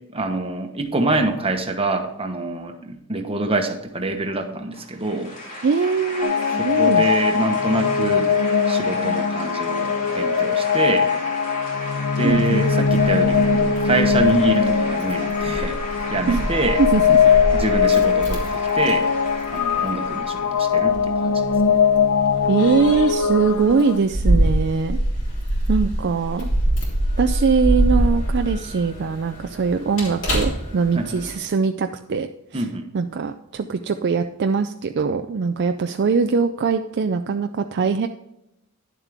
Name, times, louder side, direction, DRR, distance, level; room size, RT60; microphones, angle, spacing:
voice 1, 0.1-5.3 6.6-8.3 8.7-11.1 12.2-15.8 16.1-16.8 17.5-19.1 19.5-21.4 21.7-21.8 30.9-31.2 32.5-32.9, right 2 dB, 25° right, 5 dB, 1.1 m, -25 dB
sound 1, 4.7-20.8, left 1 dB, 35° left, 2.4 m, -35 dB
voice 2, 5.6-7.1 12.2-12.4 16.3-16.5 16.8-17.2 22.5-25.0 25.7-26.5 27.2-32.3 32.5-32.7 32.9-38.1, right 5 dB, 50° right, 7 dB, 0.4 m, -22 dB
sound 2, 6.2-24.0, left 6 dB, 90° left, 0.6 m, -20 dB
Keys jangling, 12.3-31.4, right 1 dB, 60° left, 3.3 m, -26 dB
10.5 x 7.3 x 3.5 m, 0.83 s
head